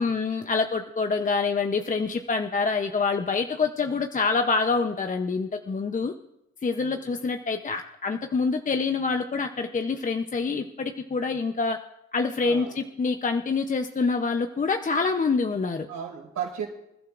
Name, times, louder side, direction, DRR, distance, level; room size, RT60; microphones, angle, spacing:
voice 1, 0.0-6.1 6.6-11.8 12.1-15.9, left 4 dB, 25° left, 6 dB, 0.7 m, -26 dB
voice 2, 6.8-7.1 12.4-12.8 15.9-16.6, right 8 dB, 75° right, -1 dB, 5.1 m, -35 dB
26.5 x 12.0 x 2.5 m, 0.85 s
cardioid pair, 90°, 30 cm